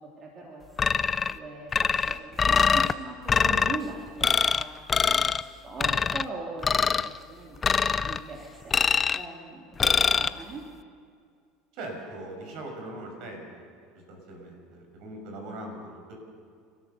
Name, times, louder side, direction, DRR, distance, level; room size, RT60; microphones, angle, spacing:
voice 1, 0.2-8.7 9.1-10.6, right 3 dB, 35° right, -2 dB, 2.9 m, -41 dB
sound 1, 0.8-1.4 1.7-2.9 3.3-3.8 4.2-4.6 4.9-5.4 5.8-6.2 6.6-7.1 7.6-8.2 8.7-9.2 9.8-10.3, left 6 dB, 25° left, 0.5 m, -23 dB
voice 2, 11.7-13.6 14.1-16.2, right 1 dB, 65° right, 2 dB, 6.4 m, -40 dB
29.5 x 13.0 x 7.0 m, 2.2 s
supercardioid pair, 115°, 0 cm